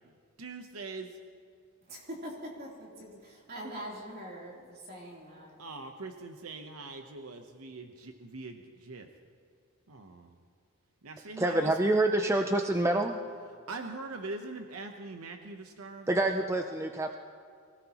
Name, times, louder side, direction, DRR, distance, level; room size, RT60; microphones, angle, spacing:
voice 1, 0.4-1.2 5.6-9.1 9.9-10.4 11.0-11.7 13.7-16.3, right 3 dB, 75° right, 5 dB, 0.9 m, -42 dB
voice 2, 1.9-5.6, equal, 45° right, -3 dB, 3.3 m, -43 dB
voice 3, 11.4-13.2 16.1-17.2, right 2 dB, 10° right, 4 dB, 0.5 m, -27 dB
23.5 x 17.0 x 3.0 m, 2.3 s
head